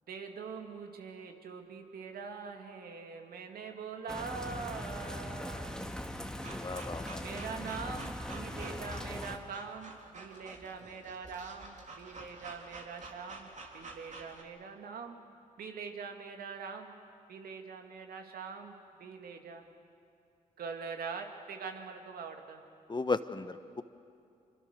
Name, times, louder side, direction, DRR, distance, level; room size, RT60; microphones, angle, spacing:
voice 1, 0.1-5.8 7.2-15.2 15.6-16.9 17.3-18.7 19.0-19.6 20.6-22.6, right 5 dB, 75° right, 4 dB, 2.4 m, -43 dB
sound 1, 4.1-9.4, left 1 dB, 5° left, 2.0 m, -40 dB
voice 2, 6.4-7.2 22.9-23.8, left 3 dB, 30° left, 12 dB, 1.2 m, -35 dB
sound 2, 6.4-14.4, right 3 dB, 50° right, 3.3 m, -49 dB
26.5 x 24.5 x 6.8 m, 2.5 s
supercardioid pair, 50°, 16 cm